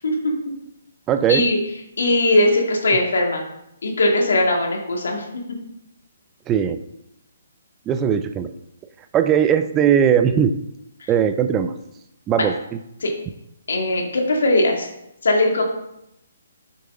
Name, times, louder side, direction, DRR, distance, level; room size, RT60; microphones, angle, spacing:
voice 1, 1.1-1.5 6.5-6.8 7.9-8.5 9.1-10.5 11.1-11.7 12.3-12.5, right 8 dB, 20° right, 9 dB, 0.4 m, -18 dB
voice 2, 2.0-3.4 3.8-5.3 11.0-11.1 13.0-13.1 13.7-14.9 15.2-15.6, left 2 dB, 75° left, 1 dB, 2.1 m, -19 dB
6.7 x 6.7 x 3.8 m, 0.81 s
hypercardioid pair, 145°, 0 cm